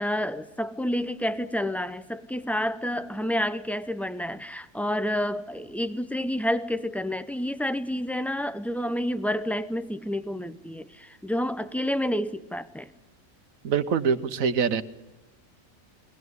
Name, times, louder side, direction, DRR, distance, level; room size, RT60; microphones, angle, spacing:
voice 1, 0.0-12.9, equal, ahead, 0.3 m, -29 dB
voice 2, 13.6-14.8, right 6 dB, 80° right, 1.4 m, -24 dB
22.5 x 18.5 x 9.6 m
omnidirectional pair, 1.4 m